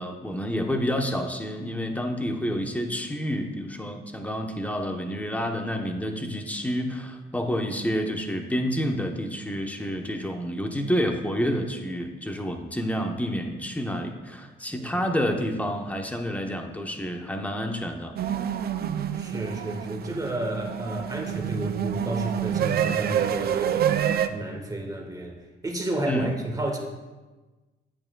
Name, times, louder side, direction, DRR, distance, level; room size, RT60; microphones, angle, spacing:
voice 1, 0.0-18.1 19.9-20.0 26.1-26.3, equal, 5° left, 4 dB, 0.9 m, -29 dB
sound 1, 18.2-24.3, right 9 dB, 50° right, 0.4 m, -27 dB
voice 2, 19.1-23.8 24.3-25.4 25.6-26.8, right 1 dB, 20° right, 1 dB, 1.4 m, -31 dB
8.8 x 8.5 x 2.3 m, 1.2 s
cardioid pair, 90°, 20 cm